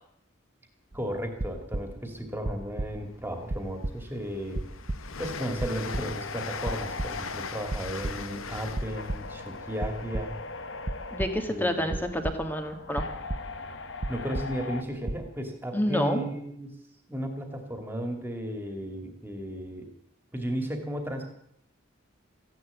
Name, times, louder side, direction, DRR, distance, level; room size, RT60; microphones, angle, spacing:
voice 1, 0.9-4.6 5.2-10.4 11.4-12.0 14.1-16.8 17.1-19.9 20.3-21.2, equal, 10° right, 5 dB, 2.5 m, -34 dB
sound 1, 0.9-2.0 2.4-3.2 3.5-5.2 5.6-6.4 6.7-7.4 7.7-8.4 8.7-9.4 9.8-10.6 10.8-11.5 11.9-12.7 13.0-13.7 14.0-14.8 15.0-15.3, right 1 dB, 35° right, 0.7 m, -34 dB
Train, 3.0-3.1 3.5-11.3, left 6 dB, 85° left, 1.0 m, -41 dB
sound 2, 5.8-14.8, left 3 dB, 60° left, 1.0 m, -41 dB
voice 2, 11.1-13.0 15.7-16.2, equal, 10° left, 6 dB, 1.7 m, -28 dB
15.0 x 11.0 x 8.2 m, 0.72 s
head